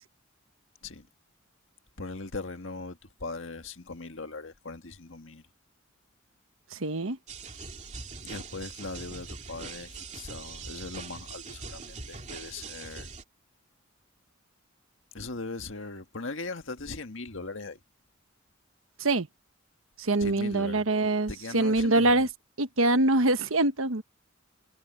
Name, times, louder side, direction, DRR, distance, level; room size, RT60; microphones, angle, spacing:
voice 1, 2.0-5.4 8.1-13.1 15.1-17.8 20.2-20.8 21.3-22.3, left 3 dB, 70° left, 1.8 m, -39 dB
voice 2, 6.7-7.2 19.0-19.3 20.0-22.3 22.6-24.0, right 2 dB, 90° right, 1.3 m, -24 dB
sound 1, 7.3-13.2, right 4 dB, 35° right, 2.7 m, -42 dB
head